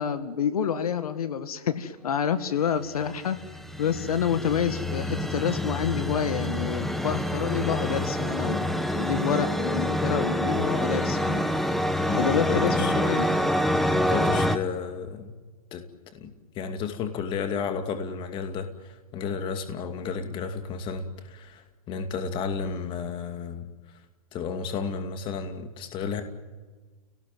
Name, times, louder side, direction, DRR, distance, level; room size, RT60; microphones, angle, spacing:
voice 1, 0.0-3.4 3.8-11.8 12.1-13.3, left 8 dB, 80° left, 11 dB, 2.0 m, -28 dB
sound 1, 3.0-14.6, equal, ahead, 1.1 m, -27 dB
voice 2, 12.1-13.4 13.9-15.3 15.7-15.8 16.1-23.7 24.3-26.2, left 6 dB, 25° left, 8 dB, 2.5 m, -32 dB
30.0 x 18.5 x 9.3 m, 1.3 s
hypercardioid pair, 145°, 19 cm